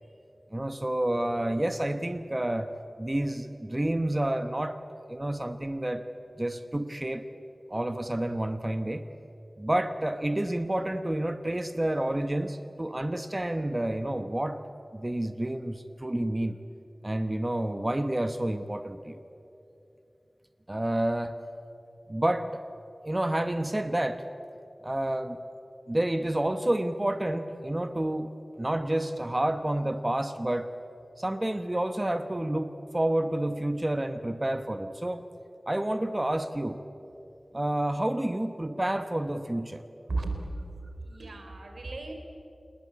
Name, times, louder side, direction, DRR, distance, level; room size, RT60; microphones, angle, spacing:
voice 1, 0.5-2.7 3.0-4.8 5.1-6.0 6.4-7.3 7.7-9.0 9.6-14.6 14.9-16.6 17.0-19.2 20.7-21.4 22.1-22.6 23.0-24.2 24.8-25.4 25.9-28.3 28.6-30.7 31.2-35.3 35.7-36.8 37.5-39.8, right 1 dB, 25° right, 9 dB, 1.1 m, -29 dB
voice 2, 41.0-42.1, right 3 dB, 85° right, 4 dB, 3.7 m, -34 dB
28.0 x 20.0 x 8.6 m, 2.8 s
wide cardioid pair, 55°, 0 cm